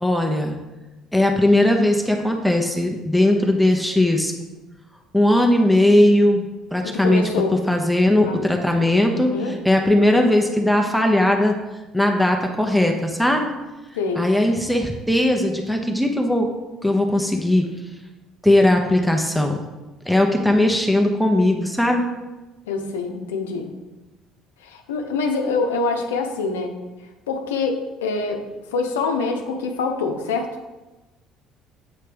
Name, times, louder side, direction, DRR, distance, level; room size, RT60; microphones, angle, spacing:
voice 1, 0.0-0.6 1.1-4.3 5.1-7.3 7.7-11.5 11.9-13.5 14.2-16.5 16.8-17.7 18.4-19.6 20.1-22.0, left 1 dB, ahead, 2 dB, 0.9 m, -18 dB
voice 2, 6.8-7.6 8.2-8.5 9.2-9.6 14.0-14.3 22.7-23.7 24.6-26.8 27.3-28.4 28.7-30.5, left 4 dB, 80° left, 4 dB, 0.7 m, -25 dB
8.3 x 3.3 x 5.1 m, 1.1 s
hypercardioid pair, 60°, 0 cm